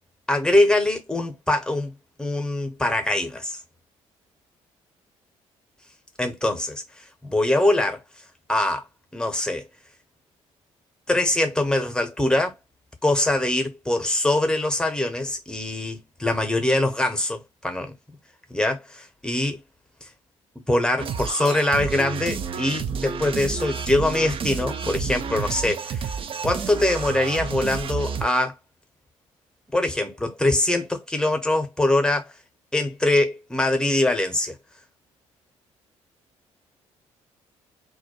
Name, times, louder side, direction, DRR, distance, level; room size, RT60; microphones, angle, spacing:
voice 1, 0.3-1.9 2.2-3.6 6.2-6.8 7.2-8.0 8.5-8.8 9.1-9.7 11.1-12.6 13.0-17.9 18.5-19.6 20.7-26.1 26.4-28.5 29.7-32.3 32.7-34.6, left 1 dB, 5° left, 0.8 m, -23 dB
sound 1, 21.0-28.3, right 6 dB, 35° right, 0.4 m, -30 dB
2.3 x 2.1 x 2.8 m
figure-of-eight pair, 45°, 17 cm